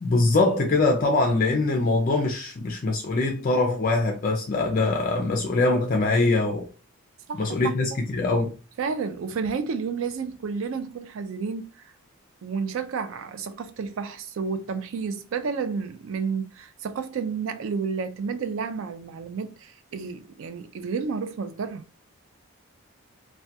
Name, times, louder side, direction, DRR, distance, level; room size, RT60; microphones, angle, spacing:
voice 1, 0.0-6.7 7.4-8.5, left 2 dB, 40° left, 0.4 m, -23 dB
voice 2, 7.3-8.0 8.8-11.7 12.4-21.8, right 5 dB, 60° right, 0.3 m, -31 dB
2.2 x 2.2 x 2.7 m
head